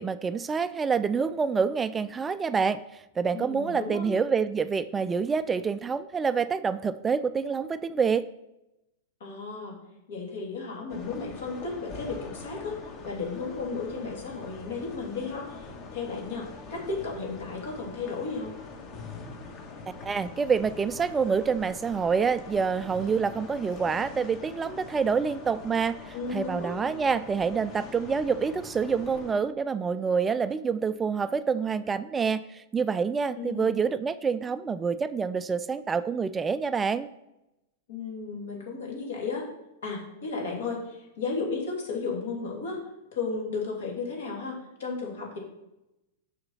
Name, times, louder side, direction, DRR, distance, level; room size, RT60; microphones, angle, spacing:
voice 1, 0.0-8.3 19.9-37.1, right 5 dB, 15° right, 14 dB, 0.3 m, -27 dB
voice 2, 3.3-4.0 9.2-9.8 10.1-12.8 13.0-15.7 15.9-18.5 26.1-26.7 33.4-33.8 37.9-39.4 39.8-42.8 43.1-45.4, left 4 dB, 65° left, -1 dB, 2.8 m, -34 dB
sound 1, 10.9-29.3, left 4 dB, 35° left, 1.4 m, -43 dB
6.6 x 5.8 x 5.6 m, 0.92 s
figure-of-eight pair, 100°, 0 cm